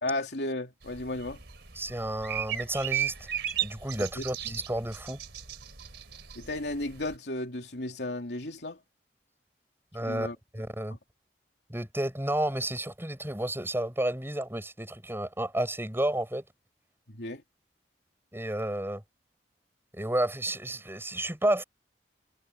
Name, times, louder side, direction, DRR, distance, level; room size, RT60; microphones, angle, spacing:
voice 1, 0.0-1.4 4.2-4.3 6.3-8.8 10.0-10.3 17.1-17.4, left 1 dB, 70° left, 3.4 m, -34 dB
sound 1, 0.8-7.2, right 10 dB, 75° right, 3.7 m, -36 dB
voice 2, 1.8-3.3 3.6-5.2 9.9-11.0 11.7-16.4 18.3-19.0 19.9-21.6, right 1 dB, 15° right, 7.0 m, -31 dB
head